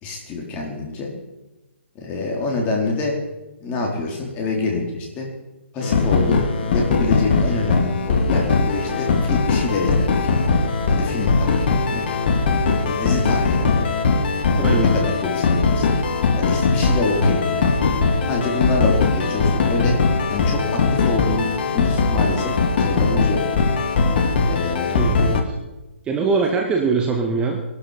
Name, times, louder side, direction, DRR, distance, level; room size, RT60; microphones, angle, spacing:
voice 1, 0.0-1.1 1.9-3.1 3.6-5.3 5.7-10.2 11.0-12.0 12.8-13.9 14.5-16.0 16.4-17.7 18.3-20.0 20.3-23.4 24.5-25.1, left 3 dB, 20° left, 0 dB, 4.3 m, -26 dB
sound 1, 5.8-25.4, left 4 dB, 50° left, 2.3 m, -20 dB
voice 2, 14.6-14.9 24.9-25.5 26.1-27.6, right 4 dB, 15° right, 2 dB, 1.8 m, -22 dB
21.0 x 12.5 x 5.3 m, 1.1 s
hypercardioid pair, 140°, 7 cm